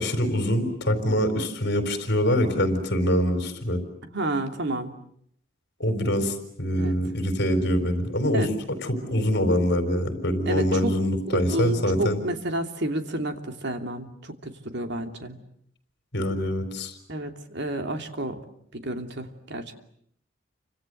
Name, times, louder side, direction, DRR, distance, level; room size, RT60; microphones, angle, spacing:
voice 1, 0.0-3.8 5.8-8.5 8.8-12.2 16.1-16.9, equal, 60° left, 9 dB, 4.2 m, -24 dB
voice 2, 4.1-4.9 6.8-6.9 8.3-8.5 10.5-10.9 11.3-15.4 17.1-18.4 18.7-19.7, right 1 dB, 60° right, 6 dB, 2.9 m, -30 dB
29.0 x 25.5 x 7.9 m, 0.69 s
head